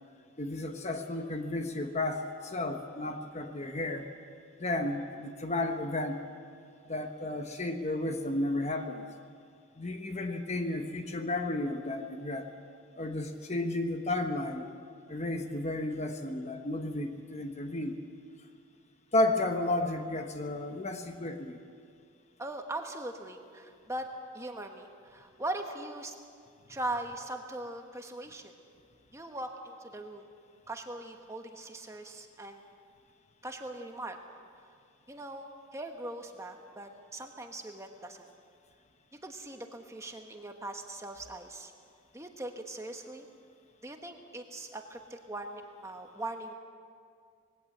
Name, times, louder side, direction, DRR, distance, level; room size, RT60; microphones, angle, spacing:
voice 1, 0.4-4.1 4.6-6.2 6.9-9.0 9.8-12.5 13.0-14.7 15.1-18.0 19.1-21.6, left 2 dB, 30° left, 6 dB, 1.0 m, -33 dB
voice 2, 22.4-24.1 24.3-26.1 26.7-28.5 29.1-30.3 30.7-32.6 33.4-34.2 35.1-38.3 39.2-41.7 42.1-43.3 43.8-46.5, right 2 dB, 15° right, 4 dB, 1.1 m, -40 dB
20.0 x 17.0 x 7.9 m, 2.2 s
head